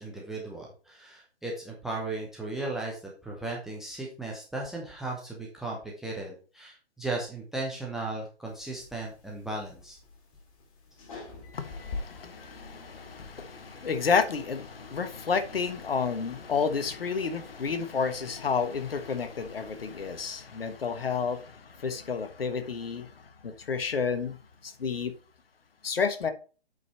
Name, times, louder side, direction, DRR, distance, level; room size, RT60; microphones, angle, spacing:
voice 1, 0.0-10.0, right 2 dB, ahead, 0.5 m, -36 dB
sound 1, 8.5-20.2, left 3 dB, 30° left, 2.3 m, -46 dB
voice 2, 11.5-23.1 23.4-24.4 24.6-25.1 25.8-26.3, left 5 dB, 60° left, 1.4 m, -30 dB
8.2 x 5.3 x 4.3 m
figure-of-eight pair, 130°, 33 cm